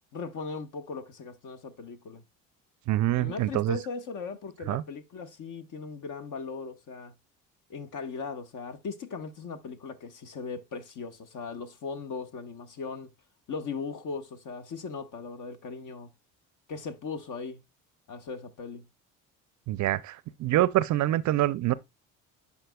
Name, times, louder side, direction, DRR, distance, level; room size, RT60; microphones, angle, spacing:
voice 1, 0.1-2.2 3.1-7.1 7.7-13.1 13.5-16.1 16.7-17.6 18.1-18.8, left 4 dB, 50° left, 1.2 m, -38 dB
voice 2, 2.9-3.8 4.7-4.8 19.7-21.7, right 15 dB, 50° right, 0.5 m, -25 dB
10.5 x 4.3 x 2.3 m
hypercardioid pair, 65°, 38 cm